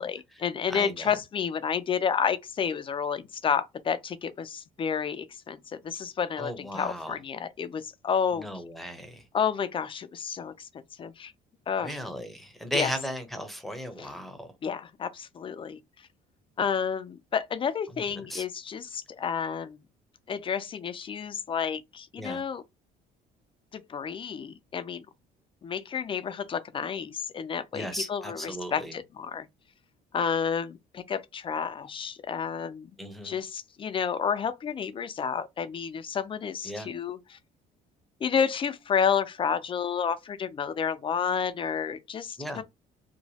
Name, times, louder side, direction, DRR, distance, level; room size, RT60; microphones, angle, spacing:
voice 1, 0.0-8.5 9.3-10.7 11.0-11.3 11.7-11.9 12.7-12.9 14.0-14.1 14.6-15.8 16.6-19.8 20.3-22.6 23.7-25.1 25.6-29.5 30.1-32.9 33.2-37.4 38.2-42.6, left 7 dB, 30° left, 0.4 m, -30 dB
voice 2, 0.7-1.1 6.4-7.2 8.3-9.2 11.8-14.5 18.3-18.4 22.2-22.4 27.7-28.9 33.0-33.4 36.6-36.9 42.4-42.6, equal, ahead, 0.7 m, -36 dB
2.9 x 2.2 x 2.8 m
cardioid pair, 110°, 17 cm